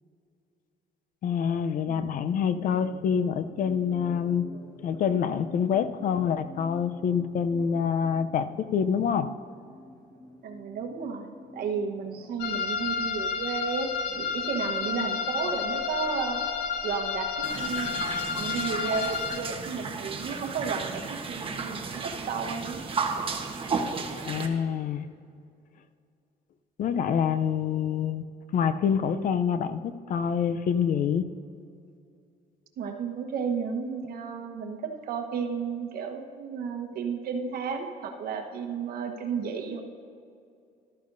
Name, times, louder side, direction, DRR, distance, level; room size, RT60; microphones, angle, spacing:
voice 1, 1.2-4.5 4.8-9.3 24.3-25.1 26.8-28.2 28.5-31.3, left 7 dB, 55° left, 12 dB, 0.6 m, -26 dB
sound 1, 2.2-15.6, equal, 20° left, 1.6 m, -49 dB
voice 2, 10.4-13.9 14.2-16.4 16.8-18.0 18.3-22.8 32.8-39.8, right 6 dB, 65° right, 4 dB, 1.1 m, -33 dB
sound 2, 12.4-19.4, left 6 dB, 85° left, 0.8 m, -31 dB
sound 3, 17.4-24.5, right 5 dB, 30° right, 1.1 m, -33 dB
14.0 x 12.5 x 2.6 m, 2.4 s
cardioid pair, 110°, 17 cm